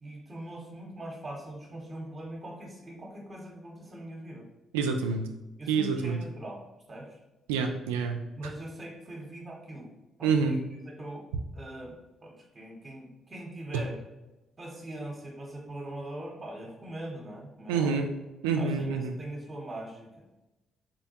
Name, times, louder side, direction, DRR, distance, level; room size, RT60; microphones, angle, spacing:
voice 1, 0.0-4.5 5.6-6.6 6.9-7.2 8.3-9.9 10.2-14.0 14.6-18.1 18.6-20.5, right 1 dB, 35° right, -1 dB, 0.8 m, -42 dB
voice 2, 4.7-5.3 5.7-6.2 7.5-8.2 10.2-10.6 17.7-18.1 18.4-19.1, right 5 dB, 85° right, 4 dB, 0.3 m, -27 dB
3.9 x 2.2 x 2.8 m, 1.0 s
hypercardioid pair, 45°, 0 cm